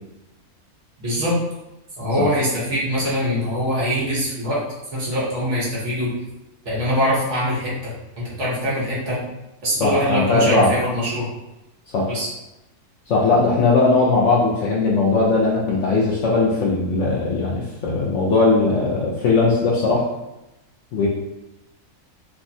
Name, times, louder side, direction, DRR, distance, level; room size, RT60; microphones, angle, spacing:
voice 1, 1.0-1.3 2.0-4.6 4.9-6.1 6.6-9.2 9.6-11.3 12.1-12.3, equal, 55° right, -7 dB, 1.2 m, -23 dB
voice 2, 9.8-10.7 11.9-12.1 13.1-20.1 20.9-21.1, left 3 dB, 65° left, -4 dB, 0.7 m, -19 dB
3.4 x 2.1 x 2.6 m, 0.95 s
omnidirectional pair, 1.6 m